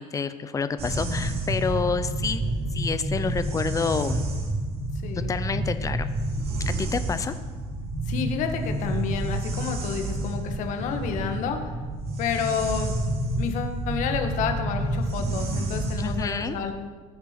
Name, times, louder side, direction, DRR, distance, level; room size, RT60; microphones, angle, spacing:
voice 1, 0.0-2.4 2.7-4.2 5.3-6.1 6.7-7.3 16.0-16.6, left 5 dB, 25° left, 11 dB, 0.8 m, -28 dB
sound 1, 0.8-16.2, right 1 dB, 45° right, 2.7 m, -29 dB
voice 2, 5.0-5.4 8.1-11.7 12.2-12.9 13.4-16.8, left 6 dB, 65° left, 5 dB, 1.9 m, -30 dB
19.5 x 7.8 x 6.0 m, 1.5 s
cardioid pair, 130°, 14 cm